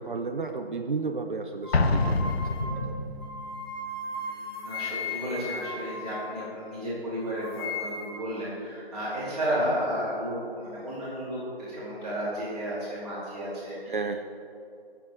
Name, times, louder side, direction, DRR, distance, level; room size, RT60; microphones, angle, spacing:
voice 1, 0.0-2.5 2.8-2.9 13.9-14.3, right 4 dB, 55° right, 4 dB, 0.8 m, -33 dB
sound 1, 1.6-6.9 7.2-8.3, left 3 dB, 25° left, 0.7 m, -37 dB
Explosion, 1.7-3.4, left 3 dB, 80° left, 0.8 m, -26 dB
Drum, 2.6-4.8, right 1 dB, 50° left, 2.7 m, -41 dB
voice 2, 4.1-14.0, equal, ahead, -16 dB, 3.2 m, -33 dB
21.5 x 7.3 x 3.5 m, 2.6 s
figure-of-eight pair, 165°, 31 cm